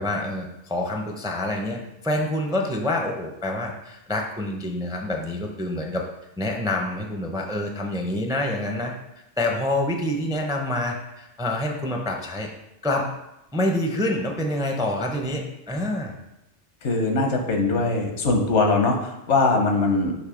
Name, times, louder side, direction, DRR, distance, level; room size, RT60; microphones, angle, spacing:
voice 1, 0.0-6.0 6.4-8.9 9.4-12.5 12.8-13.1 13.5-16.1, left 1 dB, 5° right, 2 dB, 0.4 m, -27 dB
voice 2, 16.8-20.1, left 3 dB, 80° left, 3 dB, 1.2 m, -21 dB
6.4 x 3.1 x 4.9 m, 0.90 s
omnidirectional pair, 1.2 m